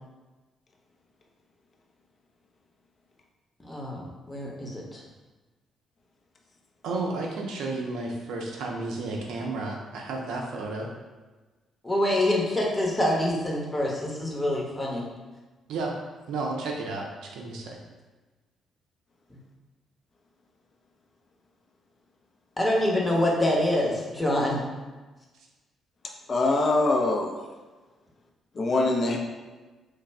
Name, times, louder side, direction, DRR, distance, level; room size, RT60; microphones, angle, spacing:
voice 1, 3.7-5.0 11.8-15.1 22.6-24.6, left 1 dB, 20° left, -3 dB, 0.8 m, -26 dB
voice 2, 6.8-10.9 15.7-15.9 16.3-17.1 17.3-17.8, right 3 dB, 60° right, 0 dB, 0.5 m, -32 dB
voice 3, 26.3-27.4 28.6-29.2, left 2 dB, 40° left, 1 dB, 0.5 m, -23 dB
3.2 x 2.3 x 3.4 m, 1.2 s
figure-of-eight pair, 40°, 0 cm